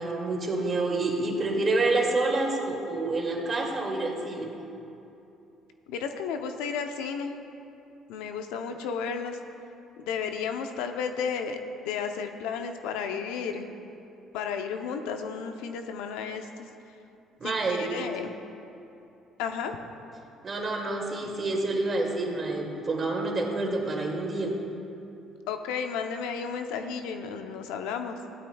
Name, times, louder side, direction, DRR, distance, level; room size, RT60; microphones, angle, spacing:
voice 1, 0.0-4.5 17.4-17.9 20.4-24.5, right 2 dB, 40° right, 0 dB, 2.3 m, -28 dB
voice 2, 5.9-7.4 8.1-9.4 10.0-11.6 11.9-13.7 14.3-16.7 17.4-18.3 19.4-19.8 25.5-28.2, left 6 dB, 80° left, 6 dB, 0.7 m, -33 dB
15.5 x 12.0 x 2.3 m, 2.9 s
supercardioid pair, 65°, 0 cm